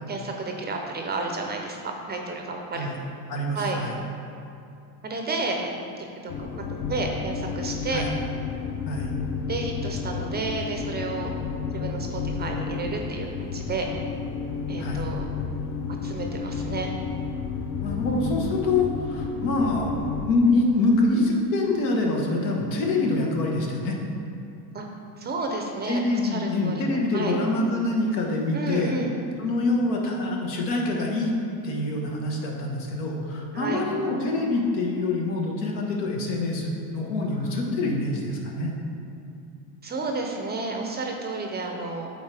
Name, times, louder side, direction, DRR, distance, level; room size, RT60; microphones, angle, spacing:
voice 1, 0.1-1.8 2.1-2.9 3.5-3.8 5.0-5.7 6.2-8.1 9.5-11.3 11.7-13.9 14.7-15.3 16.0-16.9 24.7-24.9 25.2-26.8 27.1-27.3 28.5-29.1 33.5-33.8 37.3-37.5 39.8-42.1, right 3 dB, 20° right, 2 dB, 0.4 m, -31 dB
voice 2, 3.3-3.9 7.9-8.1 8.9-9.1 14.8-15.0 17.8-24.0 25.8-28.9 29.4-31.3 31.6-38.7, left 2 dB, 85° left, 0 dB, 1.2 m, -25 dB
sound 1, 6.3-20.3, left 5 dB, 40° left, 0.5 m, -31 dB
8.0 x 4.0 x 3.3 m, 2.6 s
supercardioid pair, 115°, 49 cm